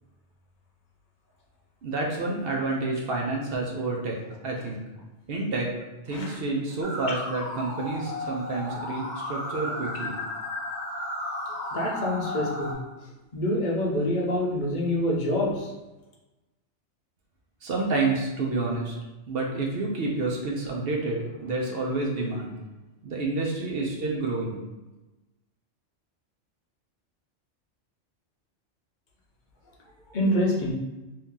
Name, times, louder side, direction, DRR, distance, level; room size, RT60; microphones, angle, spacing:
voice 1, 1.8-4.2 4.4-4.8 5.3-5.7 6.1-10.2 17.6-18.9 19.3-22.5 23.0-24.6, right 3 dB, 60° right, -1 dB, 0.8 m, -29 dB
sound 1, 6.8-12.7, left 1 dB, 65° left, 1.0 m, -34 dB
voice 2, 11.7-12.8 13.3-15.7 30.1-30.7, left 1 dB, 45° left, -2 dB, 0.7 m, -26 dB
2.8 x 2.7 x 3.6 m, 1.1 s
omnidirectional pair, 1.2 m